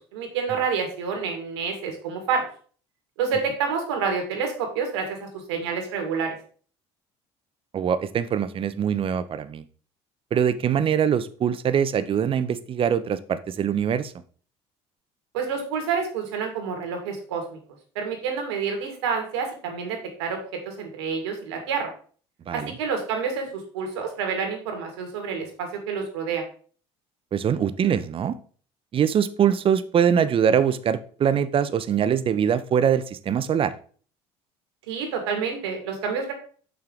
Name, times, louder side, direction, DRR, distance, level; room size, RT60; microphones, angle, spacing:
voice 1, 0.1-2.5 3.2-6.4 15.3-17.6 18.0-21.9 22.5-26.4 34.9-36.3, right 5 dB, 90° right, 3 dB, 2.1 m, -28 dB
voice 2, 7.7-9.6 10.3-14.1 22.5-22.7 27.3-28.3 28.9-33.7, right 8 dB, 40° right, 13 dB, 0.8 m, -23 dB
6.5 x 5.8 x 3.8 m, 0.43 s
supercardioid pair, 80°, 14 cm